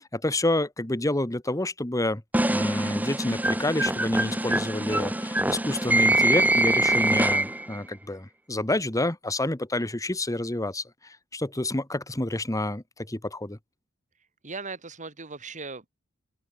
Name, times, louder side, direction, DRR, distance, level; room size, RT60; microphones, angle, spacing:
voice 1, 0.1-2.2 2.5-13.6, left 1 dB, 15° left, 1.5 m, -28 dB
sound 1, 2.3-7.8, right 1 dB, 10° right, 1.1 m, -24 dB
voice 2, 14.4-15.9, right 4 dB, 35° right, 3.3 m, -38 dB
open air
head